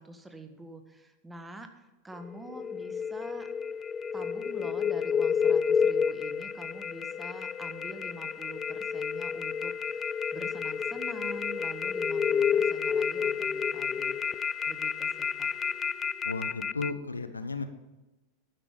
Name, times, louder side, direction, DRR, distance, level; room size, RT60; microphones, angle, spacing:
voice 1, 0.0-3.5 4.1-15.6, right 2 dB, 10° right, 7 dB, 1.4 m, -46 dB
sound 1, 2.1-16.9, left 7 dB, 20° left, 0.4 m, -30 dB
voice 2, 16.2-17.7, left 3 dB, 80° left, 10 dB, 0.9 m, -34 dB
12.0 x 9.1 x 5.3 m, 1.1 s
figure-of-eight pair, 90°, 0 cm